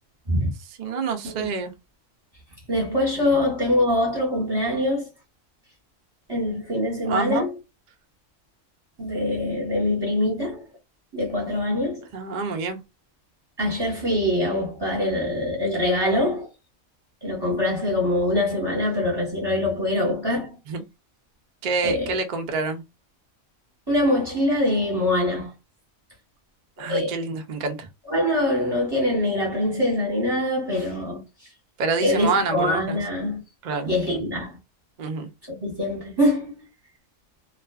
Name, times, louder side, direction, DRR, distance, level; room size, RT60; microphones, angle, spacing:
voice 1, 0.8-1.7 3.2-3.4 7.0-7.5 12.1-12.8 20.7-20.8 21.6-22.8 26.8-27.9 31.8-33.0 33.6-33.9 35.0-35.3, right 4 dB, 60° right, 0.5 m, -27 dB
voice 2, 2.7-5.1 6.3-7.6 9.0-10.6 11.1-12.0 13.6-16.5 17.2-20.6 21.8-22.1 23.9-25.5 26.9-27.1 28.0-31.2 32.0-33.4 33.9-34.6 35.5-36.5, left 1 dB, 20° right, 0.9 m, -24 dB
2.4 x 2.3 x 2.3 m
omnidirectional pair, 1.4 m